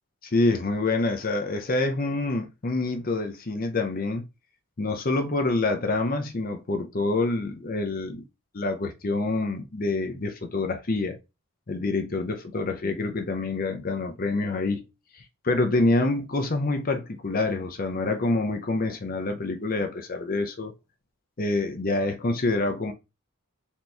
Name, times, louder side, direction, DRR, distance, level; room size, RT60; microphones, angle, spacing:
voice 1, 0.2-4.2 4.8-8.2 8.5-11.1 11.7-14.8 15.4-20.7 21.4-22.9, left 2 dB, 40° left, 0.6 m, -26 dB
4.3 x 3.0 x 3.3 m
head